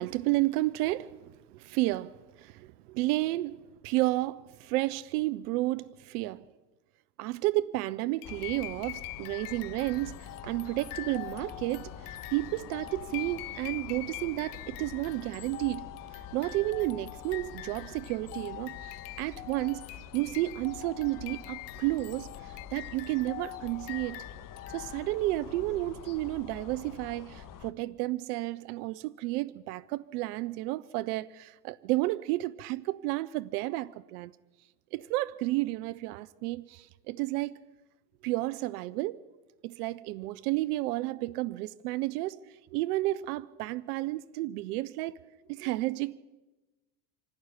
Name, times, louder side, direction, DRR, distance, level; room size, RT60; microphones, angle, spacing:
voice 1, 0.0-6.4 7.2-15.8 16.1-19.9 20.1-24.2 24.7-34.3 34.9-37.6 38.2-39.2 39.6-45.2 45.5-46.2, right 18 dB, 70° right, 0.8 m, -32 dB
sound 1, 8.2-25.3, left 17 dB, 70° left, 1.0 m, -44 dB
sound 2, 8.2-27.7, left 8 dB, 40° left, 1.9 m, -47 dB
27.0 x 11.5 x 9.8 m
hypercardioid pair, 95°, 48 cm